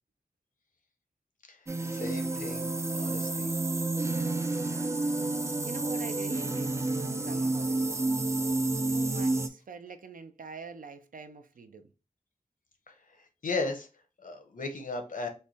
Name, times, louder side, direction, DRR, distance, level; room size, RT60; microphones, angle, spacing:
sound 1, 1.7-9.5, right 2 dB, 20° right, 0.3 m, -30 dB
voice 1, 1.8-3.5 12.9-13.0 13.4-13.9 14.2-15.3, left 3 dB, 75° left, 0.8 m, -35 dB
voice 2, 5.6-6.8 7.2-8.0 8.9-11.9, right 5 dB, 80° right, 0.5 m, -44 dB
3.2 x 2.2 x 3.9 m
wide cardioid pair, 55°, 14 cm